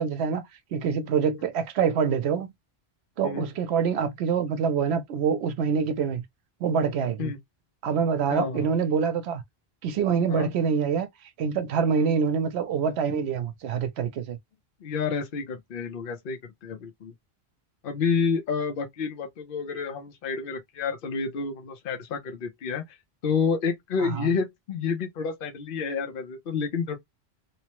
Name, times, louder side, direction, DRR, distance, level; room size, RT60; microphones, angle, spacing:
voice 1, 0.0-2.5 3.2-6.2 6.6-7.3 7.8-9.4 9.8-11.1 11.4-14.4 24.0-24.3, right 6 dB, 85° right, 0.9 m, -25 dB
voice 2, 8.3-8.7 10.3-10.5 11.9-12.1 14.8-17.1 17.8-23.0 23.2-27.0, left 5 dB, 60° left, 0.8 m, -29 dB
3.0 x 2.0 x 2.8 m
omnidirectional pair, 1.1 m